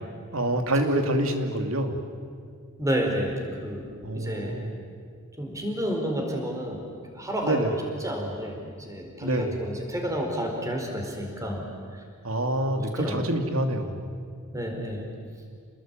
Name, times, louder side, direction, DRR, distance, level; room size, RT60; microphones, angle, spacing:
voice 1, 0.3-2.0 4.0-4.7 7.4-7.7 9.2-9.5 12.2-14.1, right 1 dB, 75° right, 5 dB, 2.7 m, -26 dB
voice 2, 2.8-3.9 4.1-4.6 5.4-6.8 7.1-7.6 8.0-11.6 11.9-12.0 13.0-13.2 14.5-15.1, equal, 15° right, 2 dB, 4.5 m, -30 dB
28.5 x 20.0 x 9.1 m, 2.1 s
head